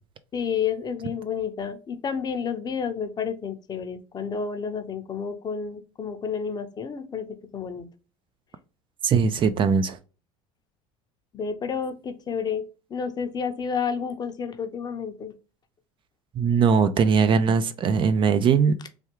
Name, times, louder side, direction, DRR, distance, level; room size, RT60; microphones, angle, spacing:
voice 1, 0.3-7.3 7.5-7.9 11.3-12.6 12.9-15.3, left 6 dB, 30° left, 0.6 m, -30 dB
voice 2, 9.0-10.0 16.4-18.8, right 6 dB, 35° right, 0.4 m, -20 dB
3.4 x 2.3 x 2.9 m
supercardioid pair, 110°, 14 cm